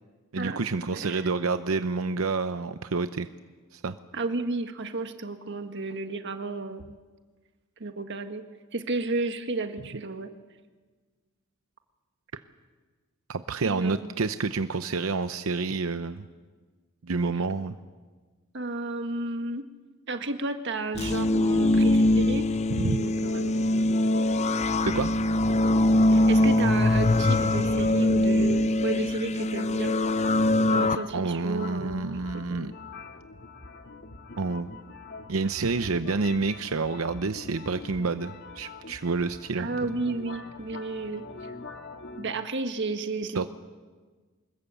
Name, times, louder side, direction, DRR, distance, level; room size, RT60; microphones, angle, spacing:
voice 1, 0.3-3.3 3.7-3.9 13.3-16.3 17.0-17.8 22.7-23.1 24.9-25.1 31.1-32.7 34.4-34.8 35.3-39.7 43.3-43.5, right 4 dB, 90° right, 10 dB, 0.7 m, -28 dB
voice 2, 0.9-1.3 4.1-6.8 7.8-8.4 8.7-10.3 13.6-14.0 18.5-19.6 20.1-22.5 22.8-23.5 26.1-29.9 30.7-32.6 39.6-41.5 42.2-43.5, right 3 dB, 60° right, 7 dB, 1.6 m, -32 dB
sound 1, 20.9-31.0, left 1 dB, 35° left, 0.6 m, -23 dB
sound 2, 23.2-42.3, left 3 dB, 60° left, 2.0 m, -43 dB
25.0 x 21.0 x 8.3 m, 1.4 s
head